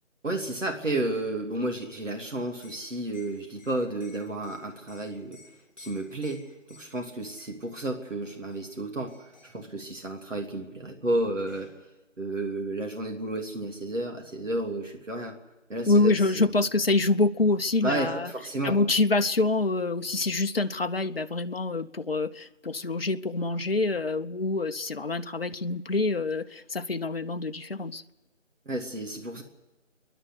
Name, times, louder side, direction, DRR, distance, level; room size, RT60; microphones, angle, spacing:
voice 1, 0.2-5.4 5.8-11.7 12.2-15.4 15.7-16.5 17.8-18.8 28.6-29.4, right 1 dB, 75° right, 3.2 m, -32 dB
Liquid, 2.5-7.8 8.2-8.8 9.1-9.6 10.8-10.9 11.2-11.8, left 4 dB, 10° left, 6.0 m, -56 dB
voice 2, 15.9-18.3 18.6-28.0, left 3 dB, 50° left, 0.8 m, -26 dB
27.0 x 11.0 x 9.7 m
figure-of-eight pair, 170°, 37 cm